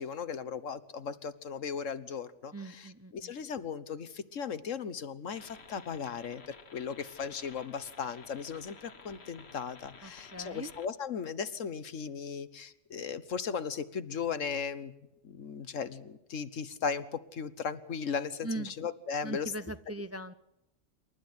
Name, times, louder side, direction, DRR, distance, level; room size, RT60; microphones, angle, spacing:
voice 1, 0.0-14.9 15.2-19.5, left 6 dB, 85° left, 13 dB, 1.5 m, -37 dB
voice 2, 2.5-3.3 10.0-10.7 18.4-18.7 19.2-20.3, right 2 dB, 15° right, 12 dB, 0.5 m, -40 dB
sound 1, 5.3-10.9, left 4 dB, 55° left, 1.7 m, -53 dB
27.5 x 12.5 x 9.6 m, 0.90 s
omnidirectional pair, 1.3 m